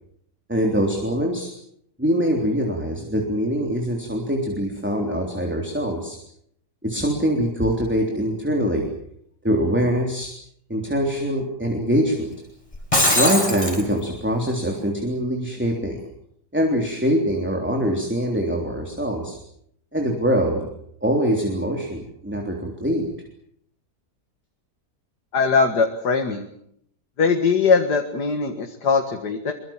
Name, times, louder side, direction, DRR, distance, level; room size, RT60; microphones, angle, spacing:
voice 1, 0.5-1.5 2.0-6.2 6.8-8.9 9.4-10.3 10.7-12.3 13.1-16.0 16.5-19.4 19.9-20.7 21.0-23.1, equal, 5° right, 1 dB, 3.5 m, -23 dB
Shatter, 12.7-13.8, left 1 dB, 20° left, 6.0 m, -20 dB
voice 2, 25.3-26.5 27.2-29.5, left 5 dB, 70° left, 5 dB, 2.4 m, -20 dB
24.0 x 24.0 x 7.4 m, 0.71 s
omnidirectional pair, 1.8 m